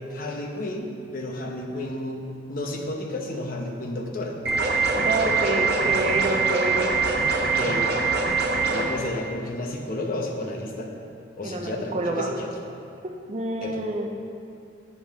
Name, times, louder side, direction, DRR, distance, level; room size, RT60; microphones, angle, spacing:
voice 1, 0.0-4.4 7.5-7.8 8.7-10.9 11.4-12.5 13.6-13.8, left 1 dB, 50° left, 1 dB, 1.0 m, -32 dB
sound 1, 4.5-8.8, right 4 dB, 60° right, 1.0 m, -23 dB
voice 2, 5.0-6.9 11.4-12.3 13.0-14.1, right 2 dB, 35° right, 2 dB, 0.6 m, -28 dB
9.4 x 7.5 x 3.6 m, 2.5 s
head